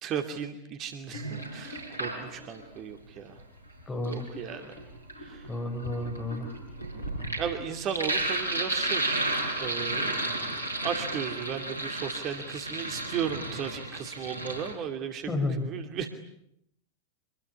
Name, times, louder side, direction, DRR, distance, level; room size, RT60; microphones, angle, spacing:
voice 1, 0.0-3.4 4.0-4.7 5.2-5.5 7.4-9.3 9.6-10.4 10.8-16.1, right 8 dB, 35° right, 7 dB, 2.7 m, -35 dB
Sink (filling or washing), 1.1-2.6 3.8-14.7, right 1 dB, 85° left, 6.3 m, -33 dB
voice 2, 3.9-4.3 4.5-4.7 5.5-6.5 15.3-15.6, left 2 dB, 15° left, 5 dB, 6.2 m, -31 dB
26.5 x 21.5 x 9.9 m, 0.74 s
figure-of-eight pair, 90°, 0 cm